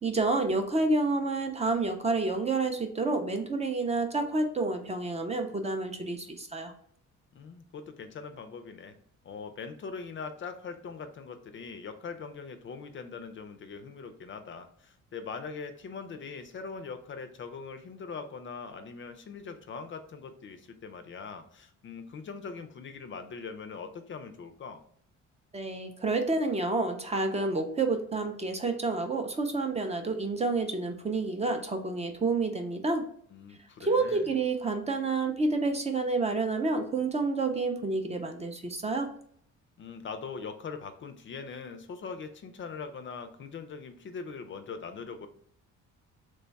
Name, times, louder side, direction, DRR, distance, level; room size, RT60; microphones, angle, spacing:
voice 1, 0.0-6.7 25.5-33.0 33.8-39.1, right 3 dB, 20° right, 5 dB, 0.4 m, -29 dB
voice 2, 7.3-9.0 9.2-24.8 33.3-34.3 39.8-45.3, left 5 dB, 40° left, 8 dB, 0.4 m, -41 dB
3.1 x 2.2 x 4.0 m, 0.64 s
cardioid pair, 90°, 30 cm